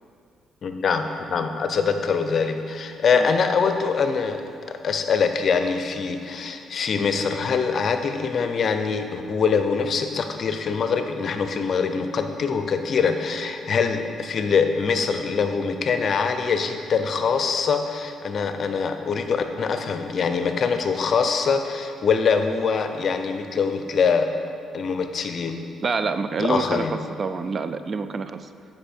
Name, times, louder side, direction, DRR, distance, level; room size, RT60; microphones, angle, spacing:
voice 1, 0.6-4.4 4.7-24.3 24.7-25.6 26.4-27.0, left 5 dB, 55° left, 7 dB, 0.6 m, -23 dB
voice 2, 25.8-28.4, right 4 dB, 45° right, 11 dB, 0.3 m, -27 dB
7.9 x 5.2 x 4.3 m, 2.4 s
cardioid pair, 90°, 0 cm